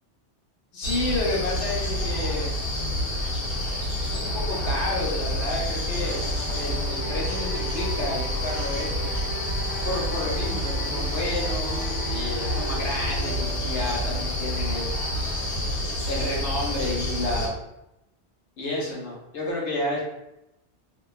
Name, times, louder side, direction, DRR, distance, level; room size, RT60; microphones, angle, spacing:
voice 1, 0.7-2.5 4.0-6.2 6.5-9.1 9.8-14.9 16.0-17.6 18.6-20.0, left 2 dB, 80° left, -3 dB, 1.0 m, -31 dB
sound 1, 0.8-17.5, left 1 dB, 60° left, 1.0 m, -28 dB
sound 2, 5.9-14.8, right 1 dB, 30° right, 0.7 m, -37 dB
2.5 x 2.2 x 2.2 m, 0.90 s
omnidirectional pair, 1.1 m